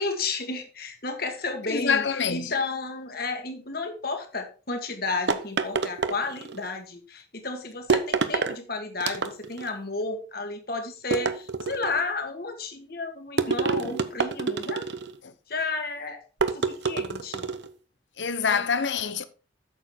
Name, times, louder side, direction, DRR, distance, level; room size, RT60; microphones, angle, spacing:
voice 1, 0.0-2.0 2.3-14.8 15.5-16.2 16.5-17.5, left 3 dB, 50° left, 2.0 m, -32 dB
voice 2, 1.6-2.5 15.2-15.3 18.2-19.3, left 6 dB, 75° left, 0.9 m, -26 dB
sound 1, 5.3-6.7 7.9-8.6 9.0-9.7 11.1-12.0 13.4-15.2 16.4-17.7, right 4 dB, 65° right, 0.8 m, -27 dB
8.9 x 7.0 x 4.4 m
head